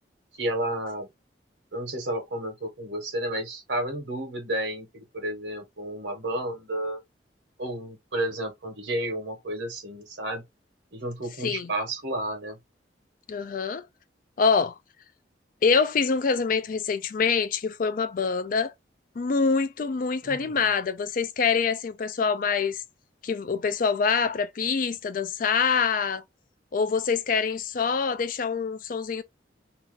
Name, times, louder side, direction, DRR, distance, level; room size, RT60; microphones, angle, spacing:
voice 1, 0.3-1.1 1.7-7.0 7.6-10.4 10.9-12.6 20.2-20.7, right 1 dB, 75° right, 1.2 m, -31 dB
voice 2, 13.3-13.9 14.4-14.7 15.6-18.7 19.2-22.8 23.2-26.2 26.7-29.2, left 5 dB, 50° left, 0.4 m, -25 dB
2.8 x 2.3 x 3.6 m
head